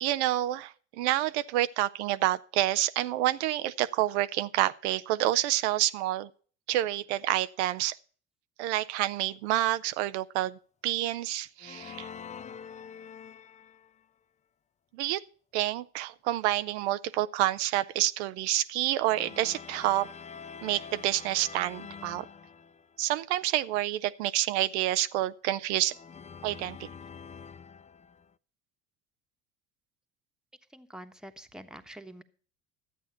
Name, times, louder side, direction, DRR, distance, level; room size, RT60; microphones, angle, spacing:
voice 1, 0.0-6.3 6.7-8.0 8.6-10.6 10.8-12.1 14.9-15.2 15.5-20.1 20.6-22.2 23.0-25.9 26.4-26.9, right 14 dB, 80° right, 0.6 m, -28 dB
sound 1, 11.6-14.0 19.0-23.0 25.9-28.3, left 6 dB, 20° left, 0.5 m, -46 dB
voice 2, 30.7-32.2, right 1 dB, ahead, 1.2 m, -46 dB
12.0 x 8.2 x 5.8 m
hypercardioid pair, 75°, 34 cm